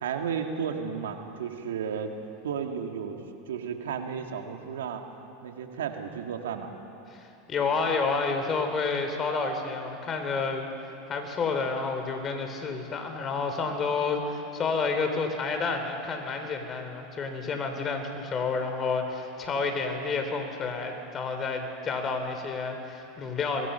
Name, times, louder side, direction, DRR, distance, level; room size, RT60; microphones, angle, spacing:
voice 1, 0.0-2.1 2.4-5.0 5.4-6.7, right 7 dB, 85° right, 4 dB, 2.0 m, -33 dB
voice 2, 7.1-10.7 11.1-23.7, left 4 dB, 30° left, 5 dB, 3.6 m, -30 dB
24.0 x 22.0 x 5.8 m, 2.8 s
hypercardioid pair, 100°, 0 cm